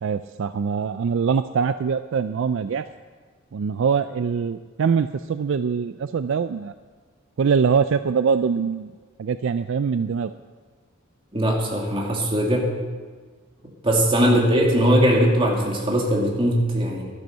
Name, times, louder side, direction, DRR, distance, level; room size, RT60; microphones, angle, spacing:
voice 1, 0.0-2.8 3.5-6.7 7.4-8.9 9.2-10.3 14.2-14.4, right 6 dB, 60° right, 11 dB, 0.4 m, -23 dB
voice 2, 11.3-12.7 13.8-17.0, equal, 25° right, -2 dB, 2.3 m, -20 dB
12.0 x 10.5 x 6.6 m, 1.5 s
head